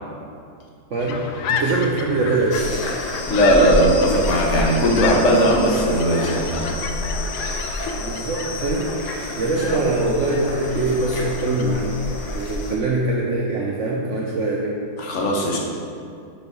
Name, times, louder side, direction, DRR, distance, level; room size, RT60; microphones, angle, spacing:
voice 1, 0.9-1.2 1.5-2.6 7.9-8.9 9.4-12.0 12.3-14.8, right 2 dB, 75° right, -3 dB, 0.6 m, -23 dB
sound 1, 1.0-11.8, left 5 dB, 75° left, 0.9 m, -32 dB
sound 2, 2.5-12.8, left 1 dB, 90° left, 1.9 m, -29 dB
voice 2, 3.3-6.8 9.7-9.8 15.0-15.6, equal, 45° left, -1 dB, 1.1 m, -18 dB
7.2 x 4.5 x 5.4 m, 2.4 s
omnidirectional pair, 2.2 m